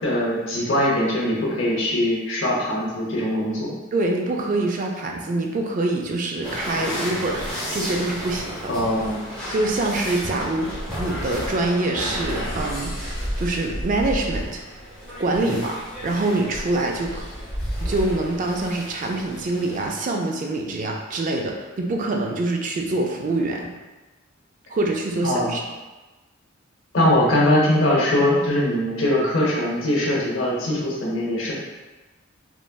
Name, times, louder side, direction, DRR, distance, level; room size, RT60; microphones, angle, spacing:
voice 1, 0.0-3.7 8.7-9.2 15.4-15.6 25.2-25.5 26.9-31.5, left 1 dB, 65° left, -3 dB, 0.7 m, -21 dB
voice 2, 3.9-7.5 7.7-8.7 9.5-10.7 11.0-14.6 15.2-15.8 16.0-17.2 17.8-23.7 24.7-25.6, right 2 dB, 40° right, 1 dB, 0.3 m, -25 dB
sound 1, 6.4-19.9, equal, 5° left, 0.6 m, -32 dB
3.1 x 2.5 x 2.2 m, 1.2 s
head